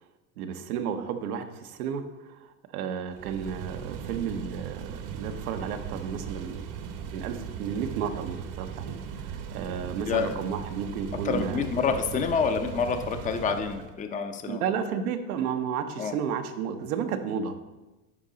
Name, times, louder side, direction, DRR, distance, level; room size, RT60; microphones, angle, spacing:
voice 1, 0.4-2.0 2.7-6.6 7.1-9.0 9.3-11.6 14.5-17.6, right 7 dB, 85° right, 7 dB, 0.9 m, -32 dB
sound 1, 3.1-14.0, right 7 dB, 50° right, 0.9 m, -38 dB
voice 2, 11.2-14.6 16.0-16.1, left 5 dB, 20° left, 7 dB, 0.6 m, -27 dB
9.8 x 4.8 x 3.8 m, 1.1 s
supercardioid pair, 105°, 43 cm